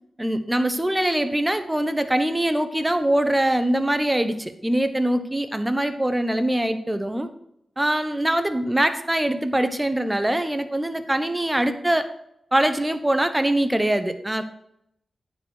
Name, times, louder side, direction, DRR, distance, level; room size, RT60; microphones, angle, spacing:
voice 1, 0.2-7.3 7.8-12.1 12.5-14.4, right 1 dB, 15° right, 10 dB, 1.0 m, -23 dB
9.6 x 5.1 x 6.5 m, 0.77 s
cardioid pair, 55°, 0 cm